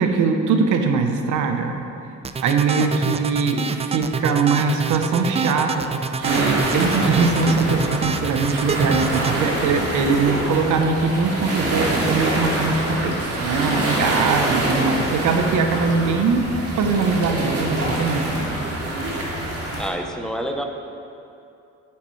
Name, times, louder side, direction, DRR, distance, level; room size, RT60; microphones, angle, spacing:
voice 1, 0.0-1.8 2.4-16.4 16.8-18.3, right 4 dB, 75° right, 5 dB, 0.9 m, -21 dB
sound 1, 2.2-9.4, right 5 dB, 20° right, 0.4 m, -26 dB
sound 2, 6.2-19.9, right 1 dB, 50° right, 2.2 m, -25 dB
voice 2, 19.8-20.6, equal, ahead, 3 dB, 0.7 m, -27 dB
10.0 x 8.3 x 3.2 m, 2.6 s
cardioid pair, 90°, 30 cm